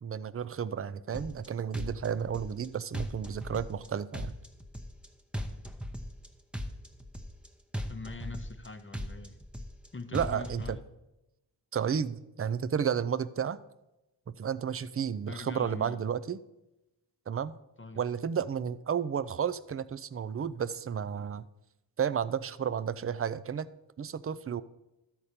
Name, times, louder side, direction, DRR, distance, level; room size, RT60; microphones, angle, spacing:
voice 1, 0.0-4.3 10.1-10.8 11.7-13.6 14.3-16.4 17.3-17.5 18.0-21.5 22.0-23.7 24.0-24.6, right 7 dB, 30° right, 16 dB, 0.4 m, -32 dB
sound 1, 1.1-1.5 1.7-2.7 2.9-3.9 4.1-5.1 5.3-6.3 6.5-7.5 7.7-8.7 8.9-9.9 10.1-10.7, equal, ahead, 0.8 m, -37 dB
voice 2, 7.9-9.4 9.9-10.8 15.3-16.0 17.8-18.0, left 3 dB, 25° left, 9 dB, 0.7 m, -43 dB
12.5 x 4.2 x 6.7 m, 0.96 s
cardioid pair, 45°, 45 cm